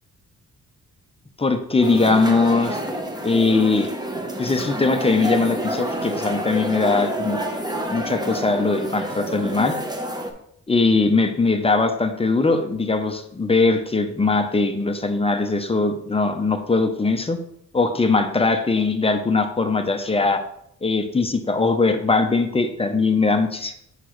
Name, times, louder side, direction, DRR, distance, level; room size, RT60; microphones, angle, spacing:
voice 1, 1.4-2.8 3.2-3.9 4.4-7.4 7.9-9.8 10.7-17.4 17.7-20.4 20.8-23.7, left 3 dB, 15° left, 6 dB, 0.6 m, -20 dB
sound 1, 1.8-10.3, equal, 10° right, 0.9 m, -28 dB
6.1 x 5.7 x 3.1 m, 0.72 s
cardioid pair, 110°, 34 cm